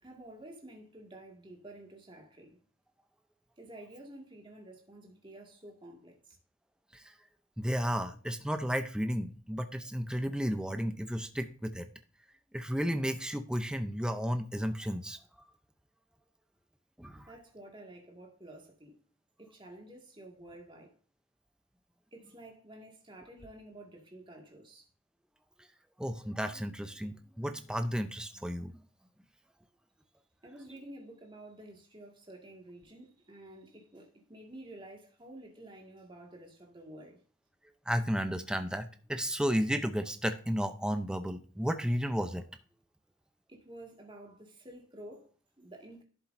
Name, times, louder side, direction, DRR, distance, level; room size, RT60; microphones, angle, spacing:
voice 1, 0.0-2.6 3.6-6.4 17.1-18.9 19.4-21.0 22.1-24.9 30.4-37.2 43.5-46.0, right 1 dB, 25° right, 2.0 m, -51 dB
voice 2, 7.6-11.9 12.5-15.2 17.0-17.3 26.0-28.7 37.9-42.4, equal, 5° right, 0.6 m, -33 dB
11.5 x 7.5 x 2.6 m
head